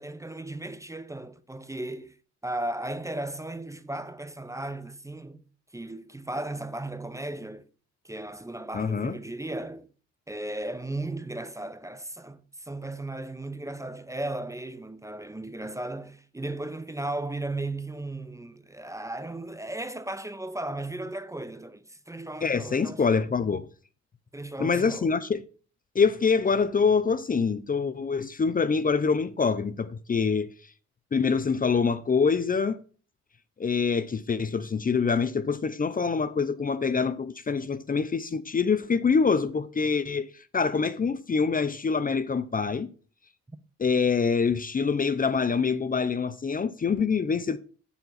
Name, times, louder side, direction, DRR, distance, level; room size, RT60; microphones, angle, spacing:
voice 1, 0.0-2.2 2.4-5.4 5.7-7.7 8.0-9.9 10.3-23.1 24.3-25.1, right 2 dB, 10° right, 0.7 m, -36 dB
voice 2, 8.7-9.2 22.4-23.7 24.6-25.4 25.9-30.5 31.1-32.8 33.6-42.9 43.8-47.6, left 5 dB, 30° left, 0.7 m, -25 dB
9.0 x 7.1 x 4.0 m
cardioid pair, 90°, 30 cm